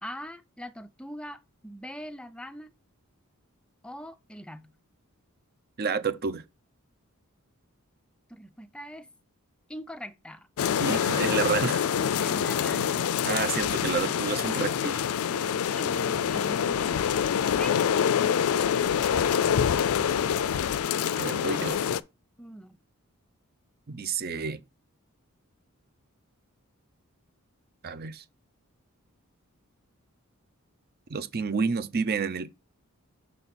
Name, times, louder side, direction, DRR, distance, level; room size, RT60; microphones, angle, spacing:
voice 1, 0.0-2.7 3.8-4.7 8.3-9.1 9.7-10.5 12.2-13.0 15.7-17.0 17.4-17.8 21.4-21.7 22.4-22.8, equal, 5° left, 0.4 m, -42 dB
voice 2, 5.8-6.4 10.8-11.9 13.2-15.0 21.1-21.8 23.9-24.6 27.8-28.2 31.1-32.5, right 5 dB, 45° right, 0.5 m, -29 dB
sound 1, 10.6-22.0, left 8 dB, 75° left, 0.4 m, -26 dB
6.5 x 4.2 x 4.1 m
head